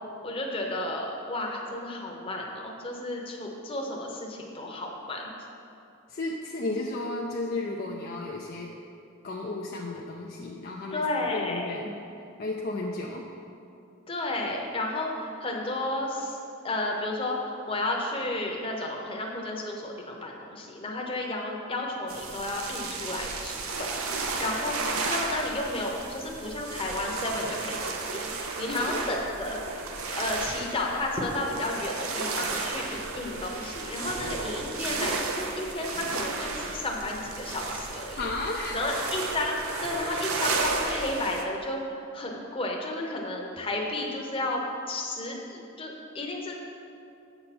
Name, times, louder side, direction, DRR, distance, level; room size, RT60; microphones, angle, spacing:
voice 1, 0.2-5.3 10.9-11.8 14.1-16.4 16.6-24.8 25.0-28.3 28.6-29.6 30.1-38.3 38.7-44.6 44.9-46.5, left 2 dB, 25° left, 0 dB, 0.9 m, -32 dB
voice 2, 6.1-8.7 9.2-11.0 11.3-13.3 28.6-29.2 38.2-38.9, left 2 dB, 45° left, -2 dB, 0.5 m, -34 dB
sound 1, 22.1-41.4, right 3 dB, 80° right, 0.7 m, -33 dB
7.8 x 6.8 x 4.2 m, 2.6 s
head